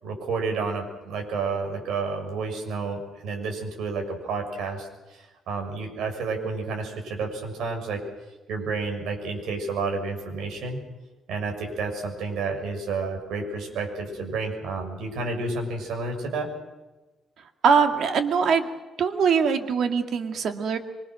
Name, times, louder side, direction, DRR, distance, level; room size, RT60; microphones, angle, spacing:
voice 1, 0.0-8.0 8.5-10.8 11.3-16.5, right 4 dB, 75° right, 3 dB, 6.7 m, -30 dB
voice 2, 17.6-18.7 19.0-20.8, right 6 dB, 55° right, 6 dB, 2.2 m, -22 dB
25.5 x 24.5 x 6.4 m, 1.1 s
cardioid pair, 170°, 0 cm